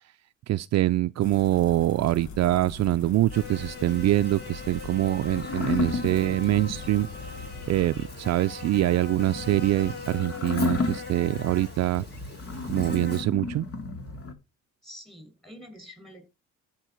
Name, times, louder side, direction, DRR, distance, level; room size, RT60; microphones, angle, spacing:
voice 1, 0.5-7.3 7.7-12.0 12.6-13.7, right 15 dB, 60° right, 0.4 m, -24 dB
sound 1, 1.2-8.0, left 5 dB, 70° left, 1.5 m, -43 dB
Buzz, 3.3-13.2, left 4 dB, 35° left, 5.7 m, -41 dB
sound 2, 4.3-14.3, left 3 dB, 50° left, 2.6 m, -34 dB
voice 2, 14.8-16.3, equal, ahead, 6.0 m, -46 dB
14.5 x 5.7 x 4.4 m
cardioid pair, 90°, 30 cm